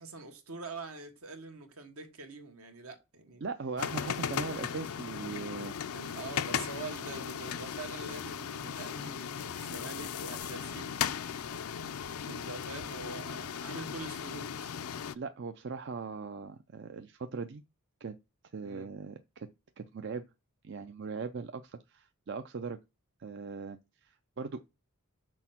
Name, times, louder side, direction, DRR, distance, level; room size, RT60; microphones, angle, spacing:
voice 1, 0.0-3.4 5.9-11.1 12.2-14.5 18.6-18.9, right 3 dB, 75° right, 1.5 m, -44 dB
voice 2, 3.4-5.8 15.1-17.6 18.0-18.2 18.5-19.5 19.8-20.2 20.6-22.8 23.2-24.6, right 4 dB, 50° right, 0.5 m, -40 dB
sound 1, 3.8-15.2, left 8 dB, 80° left, 0.5 m, -37 dB
6.3 x 4.4 x 5.8 m
head